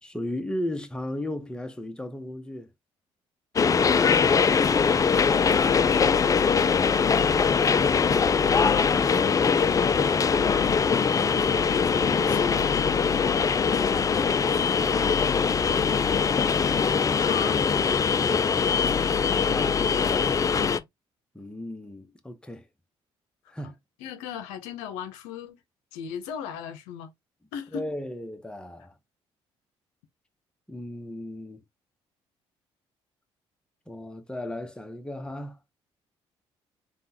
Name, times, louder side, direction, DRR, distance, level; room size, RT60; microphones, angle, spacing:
voice 1, 0.0-2.7 8.9-10.2 14.9-15.5 19.3-19.8 21.3-22.7 23.5-23.8 27.7-29.0 30.7-31.6 33.9-35.6, left 1 dB, 5° left, 0.8 m, -36 dB
sound 1, 3.6-20.8, left 6 dB, 30° left, 0.3 m, -22 dB
voice 2, 5.6-6.5 11.7-13.0 17.2-17.6 18.5-18.8 20.6-20.8 23.6-23.7 24.0-25.6 25.9-27.1 27.5-27.9, left 8 dB, 90° left, 0.6 m, -36 dB
3.6 x 2.2 x 2.7 m
supercardioid pair, 65°, 12 cm